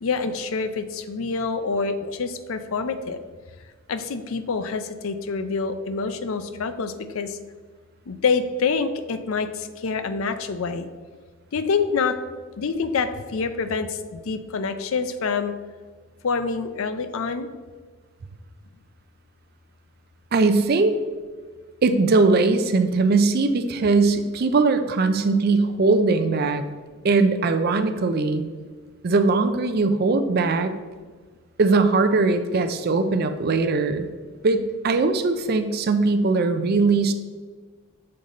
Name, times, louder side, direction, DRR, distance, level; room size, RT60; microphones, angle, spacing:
voice 1, 0.0-3.2 3.9-7.4 8.1-10.9 11.5-12.2 12.6-15.5 16.2-17.5, left 5 dB, 70° left, 10 dB, 0.5 m, -26 dB
voice 2, 20.3-21.0 21.8-26.6 27.0-28.5 29.0-30.7 31.6-34.1 34.4-37.1, right 3 dB, 45° right, 9 dB, 0.4 m, -20 dB
6.6 x 4.1 x 3.9 m, 1.4 s
head